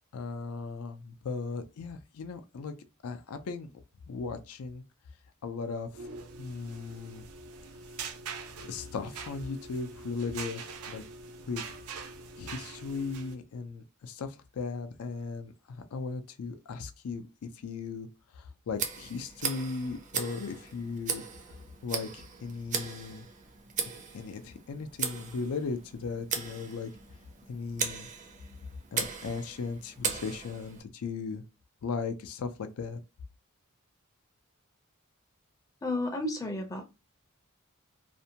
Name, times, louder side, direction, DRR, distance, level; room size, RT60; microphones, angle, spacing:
voice 1, 0.1-2.7 3.0-3.7 4.1-4.8 5.4-5.9 6.3-7.2 8.6-11.0 11.5-11.6 12.4-18.1 18.4-21.2 21.8-23.3 24.1-26.9 27.5-28.1 28.9-31.4 31.8-33.0, left 4 dB, 90° left, 0.4 m, -37 dB
sound 1, 5.8-13.3, right 5 dB, 90° right, 0.5 m, -43 dB
Tick, 18.7-30.8, right 6 dB, 35° right, 0.5 m, -38 dB
voice 2, 35.8-36.9, left 2 dB, 15° left, 0.5 m, -32 dB
2.5 x 2.1 x 2.7 m
head